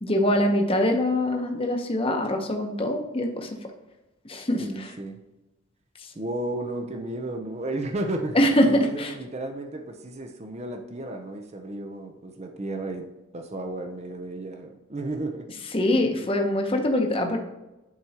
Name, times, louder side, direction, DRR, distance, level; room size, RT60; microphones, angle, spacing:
voice 1, 0.0-3.5 4.2-4.9 8.3-9.1 15.7-17.4, left 1 dB, 25° left, 3 dB, 0.9 m, -23 dB
voice 2, 4.6-5.2 6.2-8.4 8.6-13.1 13.3-15.5 16.2-16.3, right 2 dB, 30° right, 4 dB, 0.6 m, -33 dB
11.0 x 4.4 x 2.9 m, 1.0 s
head